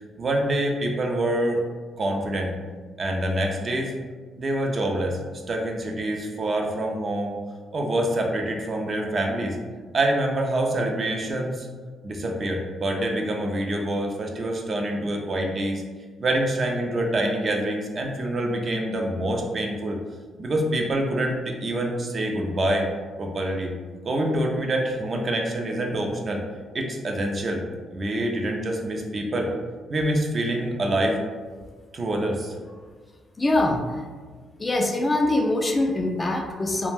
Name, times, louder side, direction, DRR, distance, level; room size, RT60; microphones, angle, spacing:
voice 1, 0.2-1.6 2.0-2.6 3.0-3.9 4.4-5.2 5.5-7.3 7.7-9.6 9.9-11.7 12.0-15.8 16.2-20.0 20.4-22.9 23.2-23.7 24.0-26.4 26.7-27.6 27.9-29.5 29.9-31.2 31.9-32.5, right 1 dB, 40° right, 1 dB, 0.4 m, -26 dB
voice 2, 33.4-34.0 34.6-36.9, left 2 dB, 25° left, 3 dB, 0.3 m, -23 dB
2.4 x 2.1 x 3.3 m, 1.5 s
cardioid pair, 90°, 0 cm